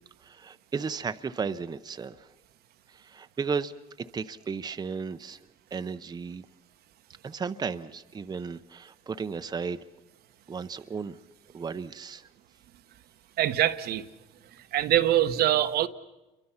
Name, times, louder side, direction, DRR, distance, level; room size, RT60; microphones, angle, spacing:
voice 1, 0.2-2.2 3.0-3.7 4.0-5.4 5.7-6.4 7.2-9.8 10.5-11.2 11.5-12.2, right 5 dB, 25° right, 0.7 m, -34 dB
voice 2, 13.4-14.0 14.7-15.9, right 12 dB, 70° right, 1.0 m, -23 dB
29.0 x 23.5 x 5.7 m
cardioid pair, 110°, 17 cm